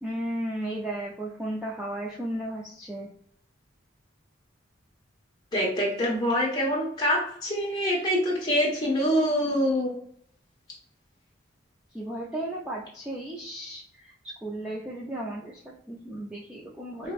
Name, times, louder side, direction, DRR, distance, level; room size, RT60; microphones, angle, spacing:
voice 1, 0.0-3.1 11.9-17.1, right 1 dB, 5° right, -5 dB, 0.4 m, -35 dB
voice 2, 5.5-9.9 17.0-17.1, equal, 20° left, -4 dB, 1.2 m, -25 dB
4.8 x 2.1 x 2.4 m, 0.64 s
head